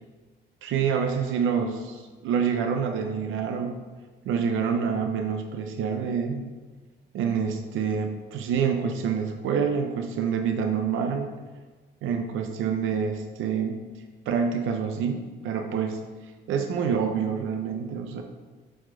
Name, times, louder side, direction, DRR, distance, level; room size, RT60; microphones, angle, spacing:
voice 1, 0.6-3.8 4.2-6.4 7.1-11.3 12.0-13.8 14.3-16.0 16.5-18.2, right 6 dB, 85° right, 5 dB, 0.7 m, -27 dB
7.3 x 4.4 x 4.5 m, 1.4 s
cardioid pair, 90°, 20 cm